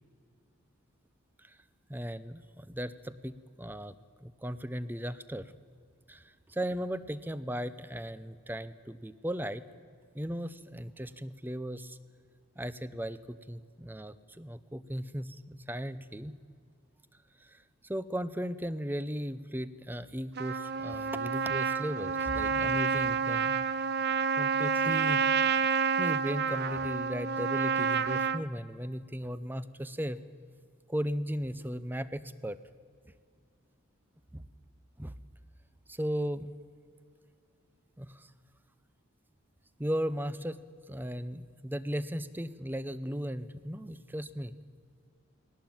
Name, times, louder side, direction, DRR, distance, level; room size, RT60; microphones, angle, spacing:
voice 1, 1.9-3.9 4.2-5.5 6.1-9.6 10.1-12.0 12.6-16.4 17.4-23.9 24.4-25.2 26.0-30.2 30.9-32.6 34.3-34.4 35.0-35.1 35.9-36.5 38.0-38.3 39.8-40.6 40.9-44.6, equal, 10° right, 15 dB, 0.6 m, -36 dB
Trumpet, 20.4-28.4, right 6 dB, 50° right, 0.7 m, -29 dB
20.5 x 18.0 x 8.8 m, 2.2 s
head